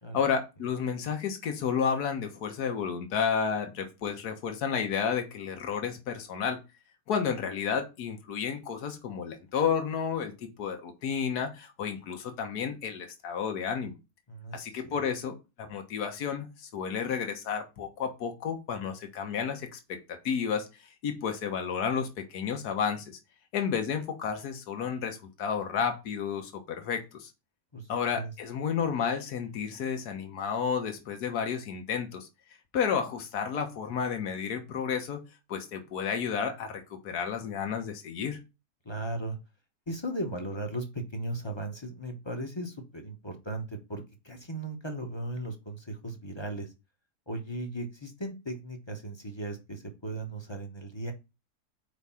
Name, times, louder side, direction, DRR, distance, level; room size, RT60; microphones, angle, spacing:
voice 1, 0.1-6.6 7.1-13.9 14.5-20.0 20.2-20.7 21.0-23.2 23.5-27.3 27.9-32.3 32.7-35.2 35.5-38.4, left 7 dB, 70° left, 5 dB, 1.6 m, -31 dB
voice 2, 14.3-15.0 27.7-27.9 28.1-28.3 38.8-39.4 39.9-46.7 47.3-51.1, right 1 dB, 20° left, 4 dB, 0.9 m, -37 dB
4.8 x 4.8 x 5.6 m, 0.27 s
omnidirectional pair, 1.7 m